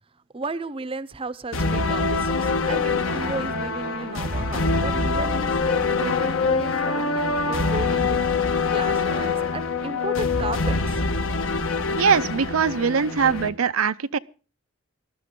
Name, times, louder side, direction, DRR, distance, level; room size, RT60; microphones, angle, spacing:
voice 1, 0.3-8.2 8.6-11.0, right 3 dB, 25° right, 0.6 m, -34 dB
sound 1, 1.5-13.5, left 4 dB, 75° left, 1.4 m, -24 dB
voice 2, 11.9-14.2, right 6 dB, 85° right, 0.6 m, -22 dB
19.5 x 12.5 x 3.7 m
head